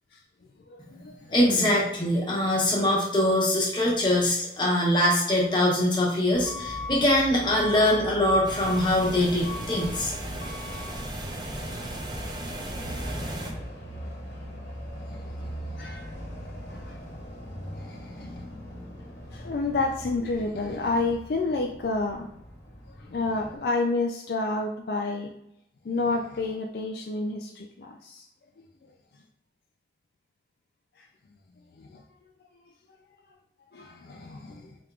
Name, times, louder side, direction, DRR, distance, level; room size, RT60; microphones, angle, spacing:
voice 1, 0.7-1.4 10.0-10.4 11.1-11.2 11.7-11.8 12.4-13.3 15.0-16.2 16.7-17.0 17.7-18.4 19.3-22.3 22.9-25.3 25.8-28.3 28.6-28.9 31.0-31.1 31.7-32.0 32.7-32.8 33.7-34.8, left 3 dB, 60° left, 2 dB, 0.3 m, -31 dB
voice 2, 1.3-10.1, left 1 dB, 25° left, -3 dB, 1.0 m, -23 dB
Truck / Alarm, 6.3-23.6, left 1 dB, 75° left, 1.2 m, -39 dB
sound 1, 8.4-13.5, right 1 dB, 25° right, 0.4 m, -36 dB
4.4 x 3.5 x 2.4 m, 0.79 s
head